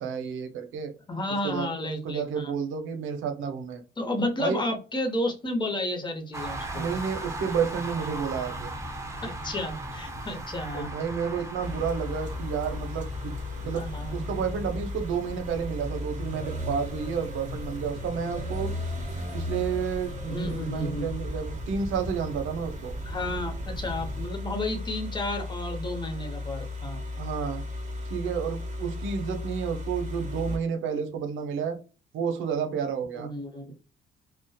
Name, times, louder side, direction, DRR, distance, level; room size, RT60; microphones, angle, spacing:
voice 1, 0.0-0.9 1.4-1.7 2.0-3.8 4.4-4.6 6.7-8.7 10.7-13.3 13.6-18.7 19.3-22.9 27.2-27.6 28.1-31.8 32.1-33.3, right 6 dB, 80° right, 6 dB, 0.6 m, -31 dB
voice 2, 1.1-2.5 4.0-6.9 9.2-10.9 13.7-14.4 20.3-21.1 23.0-27.0 33.1-33.7, left 1 dB, 25° left, 4 dB, 0.8 m, -32 dB
sound 1, 6.3-24.3, right 1 dB, 15° right, 0.6 m, -38 dB
sound 2, 11.6-30.6, left 2 dB, 35° right, 1.3 m, -36 dB
2.7 x 2.1 x 2.2 m, 0.33 s
cardioid pair, 90°, 20 cm